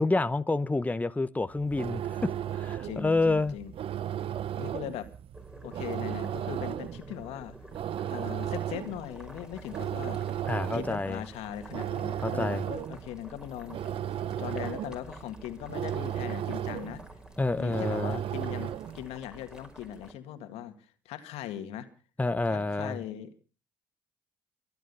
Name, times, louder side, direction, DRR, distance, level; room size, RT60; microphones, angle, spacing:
voice 1, 0.0-3.5 10.5-11.2 12.2-12.6 17.4-18.2 22.2-23.0, left 2 dB, 15° left, 0.9 m, -28 dB
sound 1, 1.5-19.1, right 10 dB, 60° right, 0.7 m, -35 dB
voice 2, 2.8-3.7 4.6-5.1 5.6-7.6 8.1-10.2 10.7-13.8 14.4-17.0 17.6-20.7 21.1-21.9 22.5-23.4, left 11 dB, 75° left, 1.9 m, -39 dB
Boiling, 5.3-20.1, equal, 5° right, 5.1 m, -50 dB
23.5 x 9.3 x 5.5 m
hypercardioid pair, 50°, 10 cm